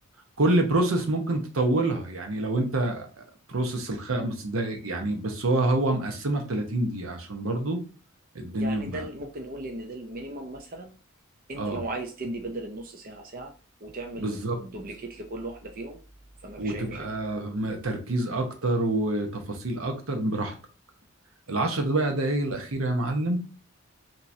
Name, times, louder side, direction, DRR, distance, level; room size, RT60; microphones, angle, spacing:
voice 1, 0.4-3.1 3.5-7.8 8.3-9.0 11.6-11.8 14.2-14.6 16.6-20.5 21.5-23.4, right 2 dB, 80° right, 4 dB, 1.0 m, -27 dB
voice 2, 8.6-10.9 11.5-13.5 13.8-16.0 16.4-17.1, right 2 dB, 45° right, 3 dB, 0.6 m, -37 dB
5.7 x 2.9 x 2.7 m, 0.36 s
head